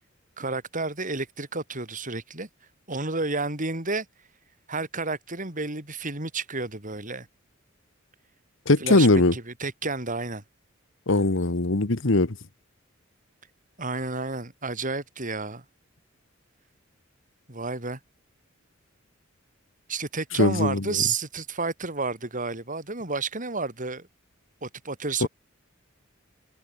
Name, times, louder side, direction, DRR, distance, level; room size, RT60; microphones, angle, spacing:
voice 1, 0.4-2.5 2.9-4.1 4.7-7.3 8.8-10.4 13.8-15.6 17.5-18.0 19.9-24.1 24.6-25.3, right 3 dB, 40° right, 5.9 m, -31 dB
voice 2, 8.7-9.3 11.1-12.3 20.4-20.8 25.2-25.3, left 2 dB, 65° left, 1.5 m, -20 dB
head